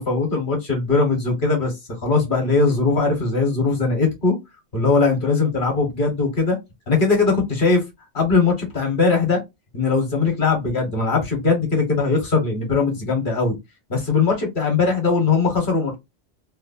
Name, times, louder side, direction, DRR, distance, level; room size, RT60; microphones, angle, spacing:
voice 1, 0.0-1.7 2.0-4.3 4.7-6.6 6.9-7.8 8.1-9.4 9.7-13.6 13.9-16.0, left 4 dB, 55° left, 1.3 m, -20 dB
3.2 x 2.0 x 2.4 m
omnidirectional pair, 1.1 m